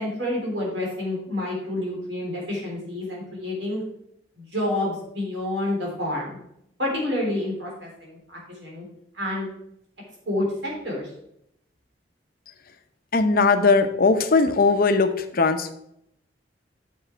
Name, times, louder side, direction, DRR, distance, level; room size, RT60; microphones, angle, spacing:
voice 1, 0.0-3.8 4.4-6.4 6.8-8.8 9.1-9.5 10.3-11.1, left 1 dB, 75° right, -2 dB, 3.6 m, -28 dB
voice 2, 13.1-15.7, left 4 dB, 50° left, 8 dB, 0.8 m, -19 dB
8.1 x 6.5 x 4.6 m, 0.77 s
head